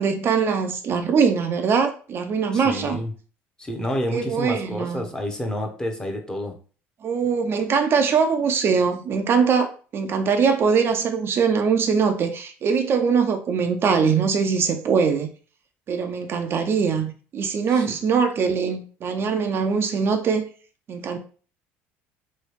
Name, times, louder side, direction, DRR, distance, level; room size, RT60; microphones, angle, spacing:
voice 1, 0.0-3.0 4.1-5.1 7.0-15.3 15.9-20.4 20.9-21.2, right 6 dB, 45° right, 0.4 m, -22 dB
voice 2, 2.5-3.1 3.6-6.5 17.7-18.0, equal, 15° left, 0.8 m, -29 dB
3.1 x 2.3 x 3.2 m
supercardioid pair, 85°, 6 cm